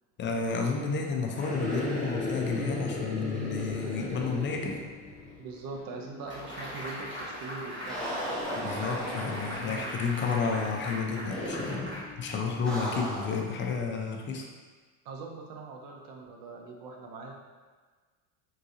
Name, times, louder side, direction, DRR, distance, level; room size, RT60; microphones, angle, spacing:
voice 1, 0.2-4.8 8.6-14.5, left 5 dB, 25° left, 1 dB, 0.4 m, -31 dB
sound 1, 1.3-5.5 5.7-5.8 7.8-9.9 11.3-12.0 12.6-13.5, left 1 dB, ahead, 0.9 m, -35 dB
sound 2, 3.7-13.5, left 3 dB, 45° left, 0.9 m, -52 dB
voice 2, 5.4-8.6 15.0-17.3, right 3 dB, 50° right, 1 dB, 0.7 m, -42 dB
sound 3, 6.3-12.7, equal, 25° right, 1.2 m, -40 dB
3.8 x 2.6 x 2.5 m, 1.4 s
supercardioid pair, 95°, 45 cm